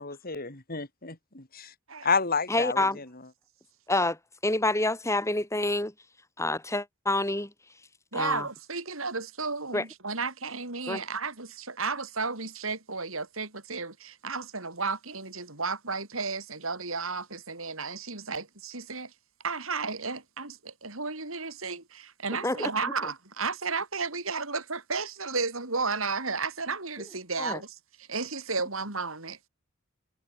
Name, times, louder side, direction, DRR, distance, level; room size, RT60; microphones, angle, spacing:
voice 1, 0.0-1.7 2.0-2.8, left 5 dB, 45° left, 3.4 m, -30 dB
voice 2, 2.5-3.0 3.9-4.2 4.4-5.9 6.4-7.5 8.1-8.4 9.7-9.8 10.9-11.0 22.4-22.7 27.4-27.6, left 2 dB, 15° left, 6.6 m, -27 dB
voice 3, 8.1-19.1 19.4-29.4, right 4 dB, 75° right, 6.8 m, -33 dB
head